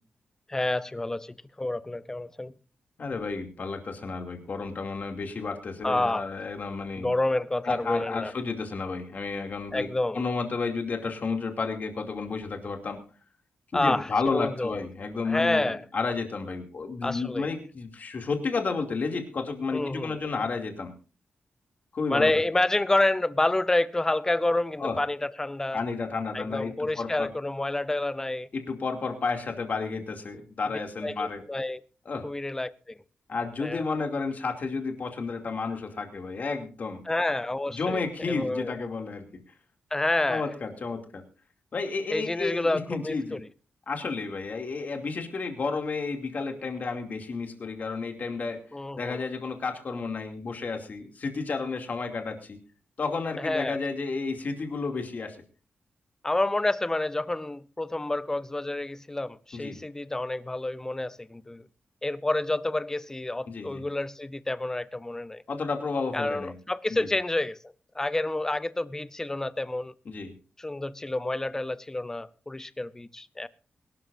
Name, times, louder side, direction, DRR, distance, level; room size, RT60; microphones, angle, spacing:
voice 1, 0.5-2.5 5.8-6.3 7.0-8.3 9.7-10.2 13.7-14.8 15.3-15.8 17.0-17.5 19.7-20.2 22.1-25.8 26.3-28.5 31.0-31.8 32.2-33.0 33.6-33.8 37.0-38.7 39.9-40.4 42.1-43.4 48.7-49.2 53.4-53.8 56.2-61.7 62.0-65.4 66.1-67.6 68.0-69.9 70.6-73.5, left 2 dB, 15° left, 0.6 m, -29 dB
voice 2, 3.0-7.1 7.6-9.9 10.1-13.0 13.7-20.9 21.9-22.4 24.8-25.0 25.7-27.3 28.5-31.4 32.1-32.3 33.3-37.0 37.7-39.4 40.3-41.2 41.7-43.4 43.9-48.6 49.0-52.6 53.0-55.4 59.5-59.8 63.5-63.9 65.5-66.6 66.9-67.1 70.1-70.3, left 4 dB, 45° left, 2.6 m, -31 dB
23.0 x 12.5 x 2.6 m
wide cardioid pair, 155°, 4 cm